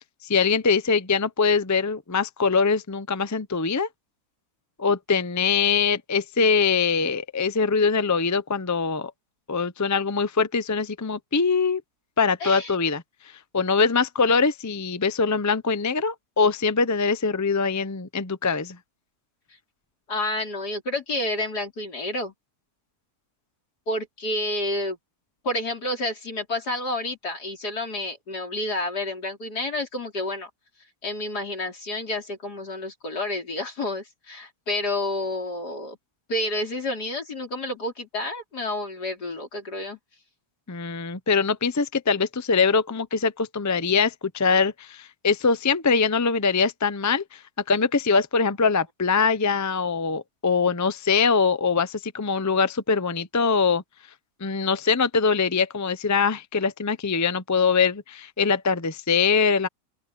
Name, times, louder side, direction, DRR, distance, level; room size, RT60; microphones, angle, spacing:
voice 1, 0.3-3.9 4.8-9.1 9.5-11.8 12.2-13.0 13.5-18.8 40.7-47.4 47.7-53.8 54.4-59.7, left 5 dB, 20° left, 0.5 m, -23 dB
voice 2, 12.4-12.7 20.1-22.3 23.9-25.0 25.4-30.5 31.0-36.0 36.3-40.0, left 1 dB, 80° left, 4.8 m, -29 dB
open air
omnidirectional pair, 1.7 m